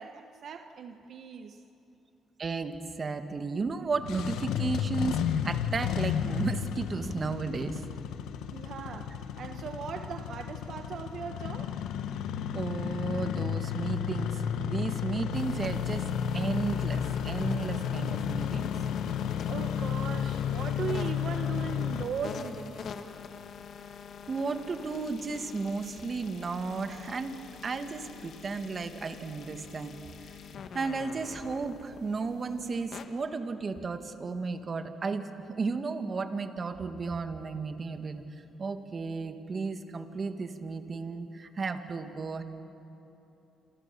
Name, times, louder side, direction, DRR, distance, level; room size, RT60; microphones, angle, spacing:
voice 1, 0.0-1.6 8.5-11.8 19.5-22.9, right 6 dB, 65° right, 6 dB, 1.1 m, -39 dB
voice 2, 2.4-7.8 12.5-18.7 24.3-27.4 27.6-30.4 30.7-38.2 38.6-42.4, right 4 dB, 40° right, 7 dB, 1.9 m, -34 dB
Engine starting, 3.9-22.0, left 9 dB, 90° left, 1.1 m, -32 dB
sound 1, 15.3-33.0, left 6 dB, 65° left, 1.8 m, -45 dB
28.0 x 27.5 x 7.0 m, 3.0 s
cardioid pair, 90°, 0 cm